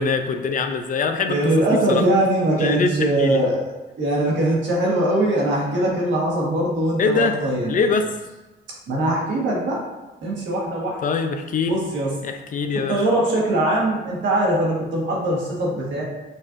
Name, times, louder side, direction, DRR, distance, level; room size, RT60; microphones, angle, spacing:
voice 1, 0.0-1.3 1.9-2.0 2.6-3.4 7.0-7.4 7.7-8.1 11.0-11.8 12.2-13.0, left 4 dB, 45° left, 6 dB, 0.4 m, -23 dB
voice 2, 1.3-7.8 8.9-9.8 10.2-11.0 11.7-12.1 12.9-16.0, right 1 dB, 70° right, -3 dB, 1.3 m, -21 dB
5.4 x 2.5 x 2.5 m, 1.1 s
cardioid pair, 90°, 20 cm